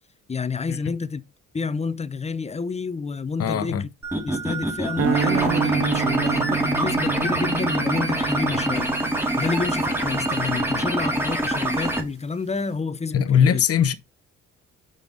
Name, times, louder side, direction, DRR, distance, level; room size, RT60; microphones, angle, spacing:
voice 1, 0.3-1.2 1.5-3.9 4.2-8.9 9.4-13.6, left 4 dB, 20° left, 0.6 m, -29 dB
voice 2, 3.4-3.8 10.7-10.8 13.1-13.9, left 8 dB, 50° left, 1.0 m, -20 dB
sound 1, 4.0-12.0, right 1 dB, 5° right, 2.0 m, -25 dB
sound 2, 5.0-11.3, right 12 dB, 50° right, 0.5 m, -30 dB
6.6 x 5.3 x 3.9 m
cardioid pair, 90°, 30 cm